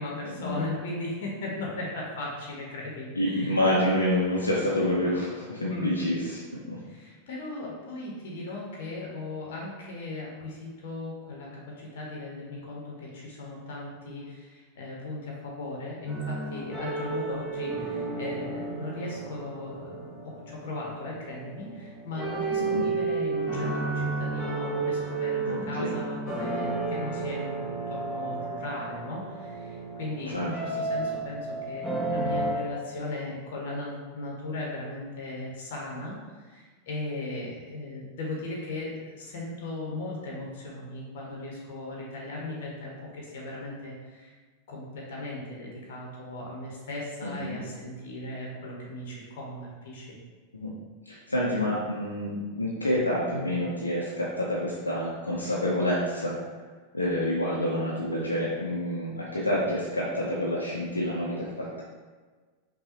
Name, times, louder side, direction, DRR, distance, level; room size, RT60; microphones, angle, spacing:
voice 1, 0.0-3.5 5.7-5.9 6.8-44.3 44.7-50.1, left 2 dB, 55° left, -2 dB, 1.0 m, -37 dB
voice 2, 3.2-6.8 22.7-22.8 25.5-26.0 30.3-30.5 47.2-47.6 50.6-50.7 51.1-56.4 56.9-61.8, left 1 dB, 80° left, -6 dB, 0.6 m, -28 dB
sound 1, 16.1-32.5, right 3 dB, 5° left, 1.2 m, -32 dB
5.4 x 2.3 x 2.9 m, 1.4 s
figure-of-eight pair, 90°, 0 cm